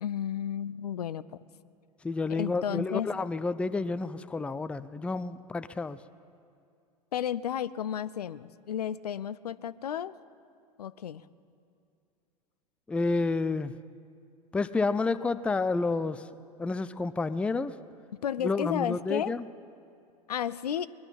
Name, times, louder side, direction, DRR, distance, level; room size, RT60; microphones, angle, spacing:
voice 1, 0.0-1.4 2.3-3.1 7.1-10.1 10.8-11.2 18.2-19.4 20.3-20.9, left 9 dB, 85° left, 16 dB, 0.4 m, -32 dB
voice 2, 2.0-6.0 12.9-13.7 14.5-16.2 16.6-17.8 18.4-19.4, left 3 dB, 5° left, 13 dB, 0.3 m, -30 dB
20.0 x 11.0 x 5.7 m, 2.4 s
hypercardioid pair, 85°, 20 cm